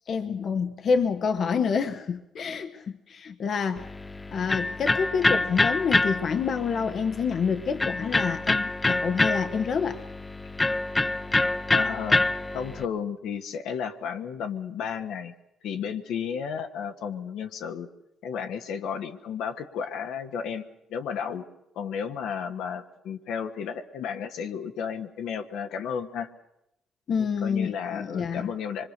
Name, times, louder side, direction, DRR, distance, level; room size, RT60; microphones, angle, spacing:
voice 1, 0.1-3.9 4.3-10.0 27.1-28.5, left 6 dB, 60° left, 7 dB, 1.2 m, -28 dB
Electric guitar, 3.8-12.8, left 2 dB, 20° left, 0.8 m, -26 dB
voice 2, 11.7-12.2 12.5-15.3 15.6-17.9 18.2-20.6 20.9-21.5 21.7-26.3 27.1-28.9, left 7 dB, 80° left, 5 dB, 1.5 m, -33 dB
25.0 x 23.0 x 6.7 m, 0.87 s
supercardioid pair, 65°, 0 cm